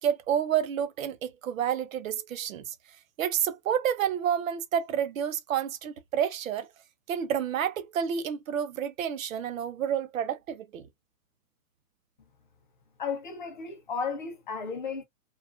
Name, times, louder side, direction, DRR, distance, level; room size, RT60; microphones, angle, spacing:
voice 1, 0.0-2.7 3.2-6.7 7.1-10.9, right 9 dB, 65° right, 0.6 m, -29 dB
voice 2, 13.0-15.0, left 5 dB, 35° left, 0.5 m, -34 dB
2.9 x 2.4 x 2.3 m
hypercardioid pair, 170°, 44 cm